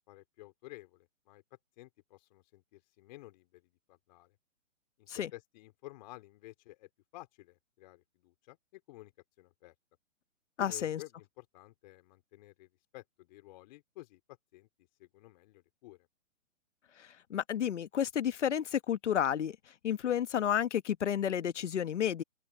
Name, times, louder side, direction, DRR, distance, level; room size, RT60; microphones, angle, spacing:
voice 1, 0.1-1.4 1.8-4.4 5.0-9.1 9.4-9.7 10.6-14.7 15.0-16.1, left 19 dB, 35° left, 4.2 m, -53 dB
voice 2, 10.6-11.0 17.0-19.6 19.8-22.2, left 9 dB, 65° left, 1.4 m, -31 dB
open air
hypercardioid pair, 155°, 39 cm